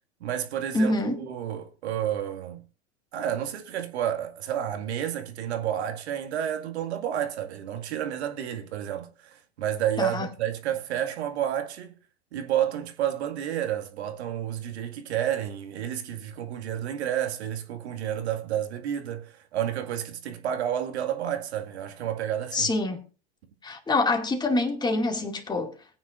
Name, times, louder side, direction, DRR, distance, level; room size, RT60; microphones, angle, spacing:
voice 1, 0.2-2.6 3.1-11.9 12.3-22.7, right 10 dB, 70° right, 2.1 m, -30 dB
voice 2, 0.7-1.2 10.0-10.3 22.5-23.0 23.6-25.7, left 2 dB, 10° left, 2.3 m, -25 dB
20.5 x 9.2 x 2.6 m
hypercardioid pair, 105°, 34 cm